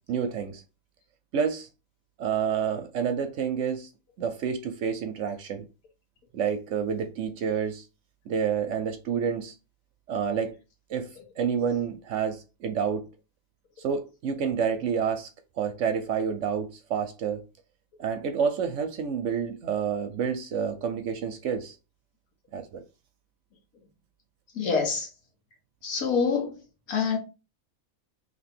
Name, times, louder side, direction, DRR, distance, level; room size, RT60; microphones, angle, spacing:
voice 1, 0.1-0.6 1.3-1.7 2.2-3.9 4.2-5.6 6.3-7.8 8.3-9.5 10.1-10.5 10.9-11.1 11.4-13.1 13.8-15.3 15.6-17.4 18.0-21.8 22.5-22.8, right 7 dB, 65° right, 0.8 m, -29 dB
voice 2, 24.6-25.1 25.8-26.5 26.9-27.2, left 5 dB, 85° left, 1.5 m, -25 dB
2.9 x 2.9 x 4.2 m
omnidirectional pair, 1.5 m